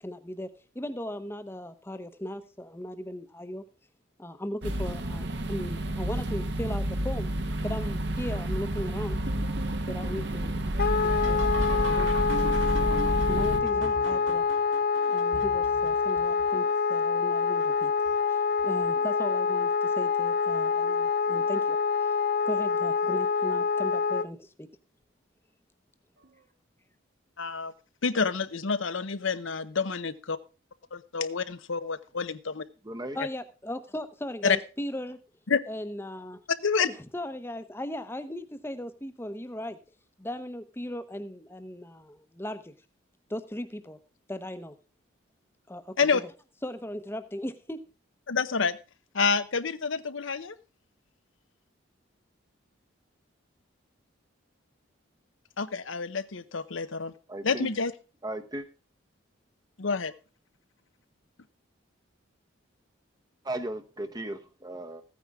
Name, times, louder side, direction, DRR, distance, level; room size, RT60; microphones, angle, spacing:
voice 1, 0.0-3.6 4.2-7.3 7.6-9.2 9.9-10.6 11.0-11.4 11.7-12.1 12.4-12.6 12.8-14.5 15.1-17.9 18.3-22.2 22.4-24.7 33.1-35.2 35.7-36.4 36.9-39.8 40.2-42.7 43.3-44.0 44.3-44.7 45.7-46.3 46.6-47.8, left 1 dB, 10° left, 0.9 m, -37 dB
sound 1, 4.6-13.6, right 1 dB, 55° right, 1.3 m, -30 dB
sound 2, 9.3-16.9 17.6-18.1 18.6-19.2 20.5-20.6 21.3-21.6 23.8-23.9 26.2-26.3, right 2 dB, 75° right, 3.2 m, -41 dB
Wind instrument woodwind instrument, 10.8-24.3, left 5 dB, 45° left, 0.5 m, -26 dB
voice 2, 27.4-27.7 28.0-30.4 30.9-32.6 34.4-34.6 35.5-35.6 36.6-36.9 46.0-46.2 48.3-48.8 49.1-50.6 55.6-57.1 57.4-57.9 59.8-60.1, left 5 dB, 75° left, 0.8 m, -28 dB
voice 3, 32.8-33.2 57.3-57.7 58.2-58.6 63.4-65.0, right 1 dB, 20° right, 0.9 m, -36 dB
15.0 x 9.5 x 3.6 m
head